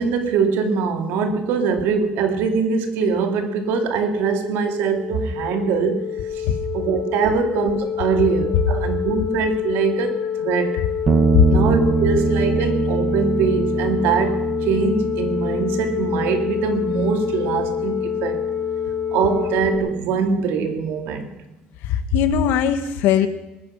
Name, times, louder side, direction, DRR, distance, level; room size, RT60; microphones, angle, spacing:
voice 1, 0.0-6.5 6.7-10.8 11.5-18.4 19.1-21.3, right 5 dB, 80° right, 6 dB, 2.4 m, -22 dB
sound 1, 2.8-19.8, left 8 dB, 30° left, 1.9 m, -27 dB
sound 2, 11.1-20.5, right 5 dB, 30° right, 1.0 m, -25 dB
voice 2, 21.9-23.3, left 9 dB, 80° left, 9 dB, 1.6 m, -18 dB
20.5 x 9.9 x 6.4 m, 1.0 s
cardioid pair, 145°, 4 cm